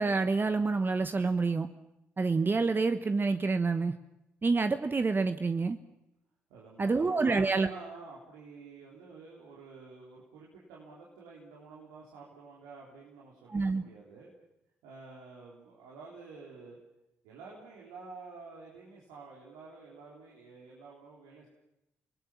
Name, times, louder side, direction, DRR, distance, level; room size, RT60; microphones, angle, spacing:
voice 1, 0.0-1.7 2.2-3.9 4.4-5.8 6.8-7.7 13.5-13.8, right 4 dB, 35° right, 9 dB, 1.1 m, -27 dB
voice 2, 6.5-14.3 14.8-16.8 17.2-21.5, right 4 dB, 80° right, -4 dB, 3.9 m, -49 dB
29.0 x 19.0 x 7.2 m, 0.88 s
hypercardioid pair, 45°, 6 cm